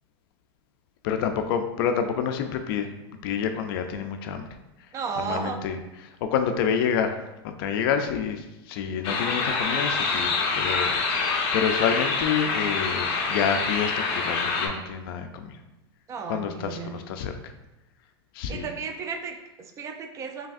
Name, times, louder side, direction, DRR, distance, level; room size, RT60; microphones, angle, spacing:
voice 1, 1.0-2.9 3.2-4.5 5.2-5.8 6.0-7.2 7.4-15.6 16.3-17.4 18.3-18.7, left 7 dB, 60° left, 7 dB, 0.4 m, -28 dB
voice 2, 4.9-5.6 16.1-17.0 18.5-20.5, right 5 dB, 20° right, 5 dB, 0.4 m, -34 dB
sound 1, 9.0-14.7, left 4 dB, 45° left, 0.8 m, -26 dB
4.6 x 3.2 x 2.5 m, 0.96 s
supercardioid pair, 145°, 14 cm